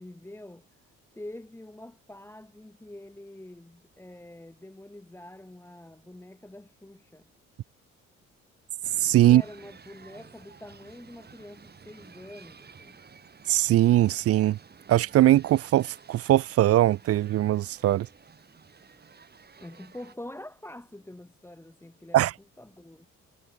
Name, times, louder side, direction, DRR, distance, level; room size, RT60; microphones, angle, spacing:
voice 1, 0.0-7.3 9.2-13.0 19.6-22.3 22.6-23.1, left 1 dB, 10° left, 1.5 m, -45 dB
sound 1, 8.8-20.2, right 5 dB, 35° right, 1.8 m, -52 dB
voice 2, 9.0-9.4 13.5-14.6 14.9-18.1 22.1-22.3, right 14 dB, 50° right, 0.4 m, -21 dB
cardioid pair, 90°, 30 cm